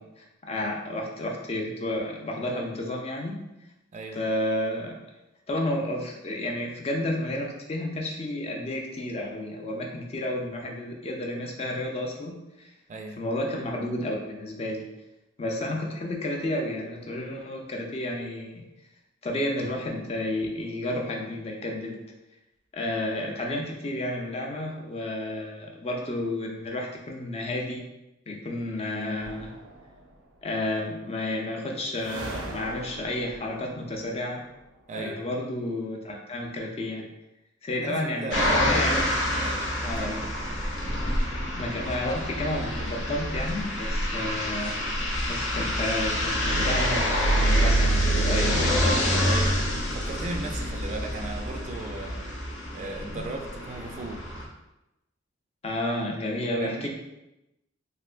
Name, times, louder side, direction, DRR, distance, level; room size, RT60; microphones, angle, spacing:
voice 1, 0.0-3.5 4.1-5.0 5.5-12.7 13.2-14.9 15.4-18.6 19.2-22.0 22.7-27.8 28.3-29.5 30.4-34.4 34.9-37.1 37.6-39.2 39.8-40.3 41.6-44.8 45.3-48.8 53.1-53.2 55.6-56.9, left 1 dB, 35° left, 0 dB, 0.4 m, -31 dB
voice 2, 12.9-13.2 34.9-35.3 37.8-38.7 39.4-39.7 39.9-40.2 49.2-49.6 49.9-52.3 52.7-54.2 56.6-56.9, right 2 dB, 40° right, 2 dB, 0.3 m, -36 dB
sound 1, 29.2-30.4 31.9-34.8, right 2 dB, 85° right, 0.6 m, -41 dB
sound 2, 38.3-54.4, equal, 75° left, 0.7 m, -26 dB
3.3 x 2.8 x 2.4 m, 0.94 s
head